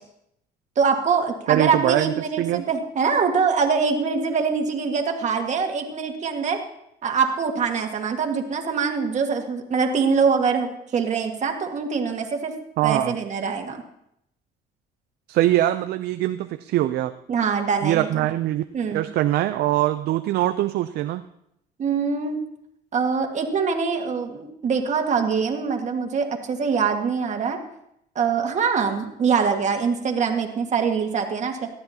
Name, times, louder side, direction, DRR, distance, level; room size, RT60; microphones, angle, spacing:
voice 1, 0.8-6.6 7.0-12.5 12.8-13.8 17.3-18.3 18.7-19.0 21.8-22.4 22.9-27.6 28.2-31.7, right 5 dB, 45° right, 3 dB, 1.8 m, -23 dB
voice 2, 1.5-2.6 12.8-13.2 15.3-17.1 17.8-18.6 18.9-21.2, right 14 dB, 75° right, 9 dB, 0.5 m, -22 dB
18.5 x 12.5 x 2.9 m, 0.78 s
cardioid pair, 110°, 17 cm